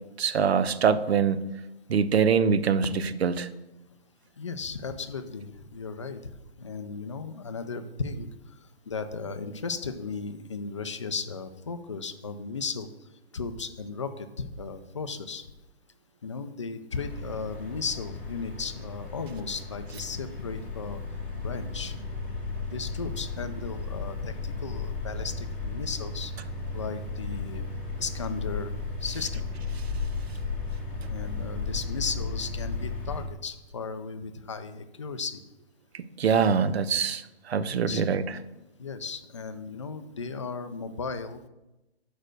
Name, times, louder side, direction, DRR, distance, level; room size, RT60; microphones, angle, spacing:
voice 1, 0.2-1.5 1.9-2.9 3.2-3.5 35.9-38.2, right 6 dB, 75° right, 13 dB, 0.7 m, -24 dB
voice 2, 4.4-8.3 8.9-12.9 13.3-15.5 16.2-21.0 21.4-22.0 22.7-26.3 26.7-27.6 28.0-28.7 29.0-29.4 31.1-35.4 37.7-38.0 38.8-41.5, left 4 dB, 30° left, 9 dB, 0.4 m, -35 dB
sound 1, 16.9-33.2, left 3 dB, 5° left, 1.1 m, -35 dB
6.5 x 5.0 x 6.3 m, 0.99 s
hypercardioid pair, 165°, 32 cm